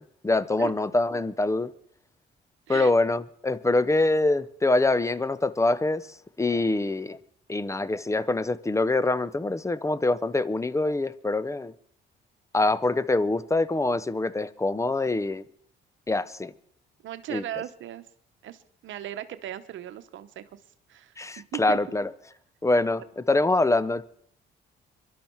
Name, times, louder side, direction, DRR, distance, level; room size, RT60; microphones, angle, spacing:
voice 1, 0.0-1.7 2.7-6.0 6.4-7.2 7.5-11.7 12.5-15.4 16.1-16.5 17.3-17.4 21.2-22.1 22.6-24.1, left 2 dB, 15° left, 0.7 m, -24 dB
voice 2, 17.0-18.0 18.4-20.4 20.9-21.8, right 12 dB, 75° right, 1.0 m, -37 dB
23.5 x 12.0 x 4.6 m
cardioid pair, 90°, 20 cm